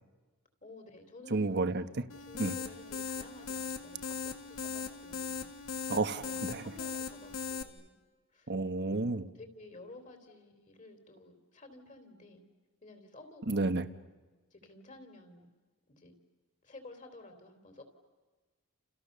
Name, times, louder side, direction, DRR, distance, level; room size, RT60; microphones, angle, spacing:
voice 1, 0.6-1.6 2.3-5.4 6.2-7.9 8.3-8.5 9.0-12.4 12.8-13.7 14.5-15.5 15.9-16.1 16.6-17.8, left 2 dB, 35° left, 6 dB, 3.8 m, -53 dB
voice 2, 1.3-2.0 2.4-2.5 5.9-6.6 8.5-9.3 13.5-13.9, right 3 dB, 50° right, 10 dB, 1.2 m, -31 dB
sound 1, 2.1-7.6, left 5 dB, 65° left, 2.0 m, -39 dB
30.0 x 29.5 x 6.8 m, 1.3 s
head